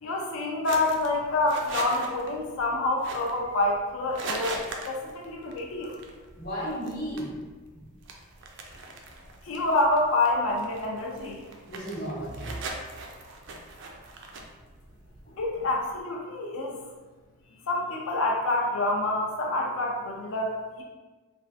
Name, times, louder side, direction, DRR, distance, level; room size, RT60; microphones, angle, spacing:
voice 1, 0.0-6.0 9.4-11.4 15.4-16.8 17.7-20.8, left 2 dB, 70° left, -1 dB, 0.4 m, -27 dB
sound 1, 0.6-16.0, right 2 dB, 55° right, 0.4 m, -41 dB
voice 2, 6.4-7.4 7.7-7.8 11.7-12.6 15.3-15.4, equal, 45° left, -5 dB, 0.9 m, -34 dB
3.2 x 2.4 x 2.5 m, 1.3 s
head